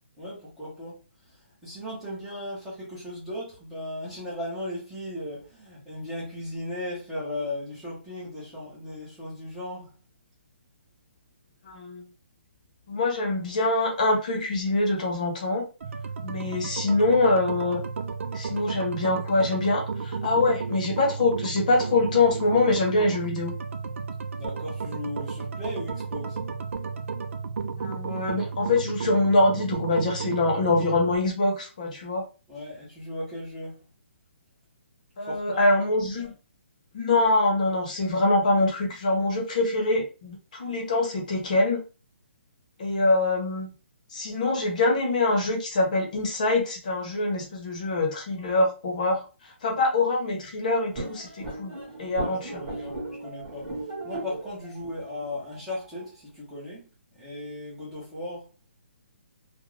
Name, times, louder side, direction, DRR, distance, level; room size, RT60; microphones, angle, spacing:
voice 1, 0.2-1.0 1.6-9.9 24.4-26.4 32.5-33.8 35.3-35.7 52.2-53.7 54.0-56.9 57.2-58.4, left 1 dB, 5° right, 0.8 m, -36 dB
voice 2, 11.7-12.0 12.9-15.7 16.2-17.8 18.3-23.5 27.8-32.3 35.2-36.3 36.9-41.8 42.8-43.7 44.1-49.2 49.6-51.7 52.0-52.6, left 2 dB, 35° left, 0.9 m, -24 dB
sound 1, 15.8-31.2, right 5 dB, 80° right, 0.5 m, -33 dB
sound 2, 50.9-56.1, right 2 dB, 20° right, 1.1 m, -37 dB
2.5 x 2.2 x 3.2 m
hypercardioid pair, 175°, 7 cm